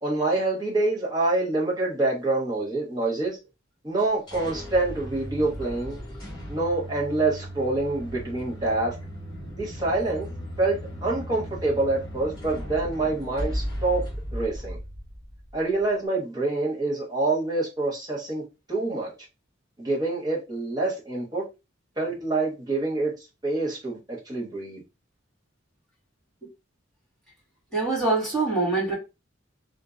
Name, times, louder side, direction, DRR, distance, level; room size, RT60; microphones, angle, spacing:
voice 1, 0.0-3.4 3.8-6.0 6.5-8.9 9.6-10.3 10.6-14.0 14.3-14.8 15.5-18.4 18.7-19.1 19.8-21.4 22.0-23.1 23.4-24.8, right 2 dB, 20° right, 1.1 m, -26 dB
sound 1, 4.0-15.6, equal, 25° left, 2.0 m, -36 dB
voice 2, 27.7-28.9, right 3 dB, 5° left, 1.9 m, -24 dB
3.6 x 2.6 x 2.5 m
head